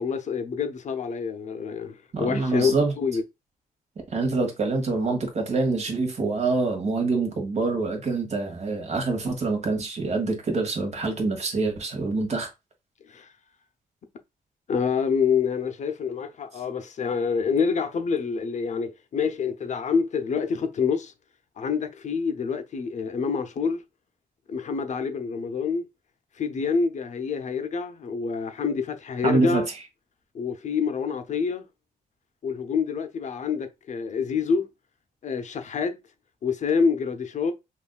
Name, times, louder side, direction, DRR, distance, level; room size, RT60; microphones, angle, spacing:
voice 1, 0.0-3.2 13.1-13.3 14.7-21.1 21.6-23.8 24.5-25.8 26.4-29.7 30.3-31.7 32.4-34.7 35.2-35.9 36.4-37.5, left 5 dB, 55° left, 0.7 m, -27 dB
voice 2, 2.1-2.9 4.1-12.5 29.2-29.6, right 3 dB, 50° right, 1.5 m, -25 dB
5.6 x 2.6 x 2.3 m
wide cardioid pair, 135°, 15 cm